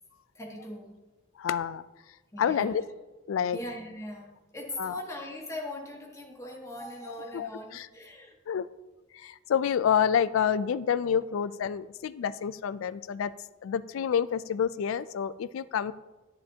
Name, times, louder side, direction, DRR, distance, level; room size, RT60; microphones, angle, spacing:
voice 1, 0.3-1.0 2.3-2.8 3.5-8.3, left 1 dB, 15° left, -1 dB, 1.4 m, -40 dB
voice 2, 1.4-1.8 2.4-2.8 3.3-3.6 4.8-5.0 7.3-7.9 8.5-8.7 9.1-13.3 13.6-15.9, left 8 dB, 85° left, 17 dB, 0.3 m, -28 dB
11.0 x 9.8 x 2.8 m, 1.1 s
head